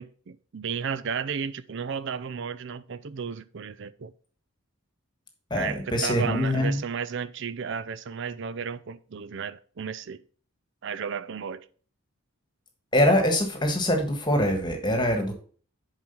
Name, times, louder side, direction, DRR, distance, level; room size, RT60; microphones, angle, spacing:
voice 1, 0.0-4.1 5.5-10.2 10.8-11.7, right 6 dB, 55° right, 0.5 m, -33 dB
voice 2, 5.5-6.8 12.9-15.3, equal, 20° left, 1.5 m, -23 dB
7.5 x 4.9 x 5.3 m
head